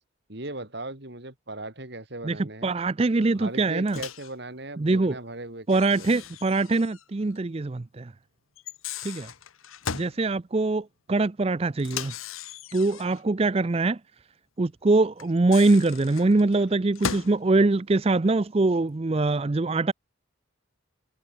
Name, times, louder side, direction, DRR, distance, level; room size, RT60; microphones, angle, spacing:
voice 1, 0.3-2.7 3.2-6.2, right 2 dB, 55° right, 3.3 m, -38 dB
voice 2, 2.2-4.0 4.8-5.2 5.7-8.1 9.0-9.3 9.9-12.1 12.7-14.0 14.6-19.9, right 3 dB, 30° right, 0.5 m, -23 dB
Microwave oven, 3.9-4.3 5.7-7.1 7.3-7.4 8.6-10.2 11.8-13.2 15.2-17.4, left 7 dB, 85° left, 1.0 m, -37 dB
head